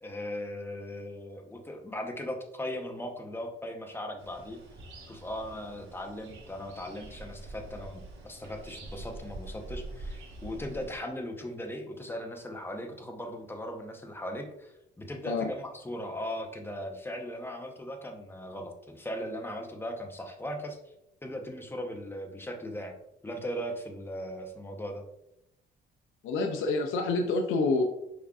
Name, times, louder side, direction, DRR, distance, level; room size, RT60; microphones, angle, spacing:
voice 1, 0.0-4.6 5.1-20.8 21.2-22.9 23.2-25.0, equal, 10° left, 3 dB, 0.8 m, -38 dB
sound 1, 4.2-11.0, right 2 dB, 85° right, 1.1 m, -45 dB
voice 2, 26.2-27.8, left 3 dB, 85° left, 4 dB, 0.5 m, -27 dB
5.2 x 3.6 x 2.3 m, 0.84 s
cardioid pair, 90°, 20 cm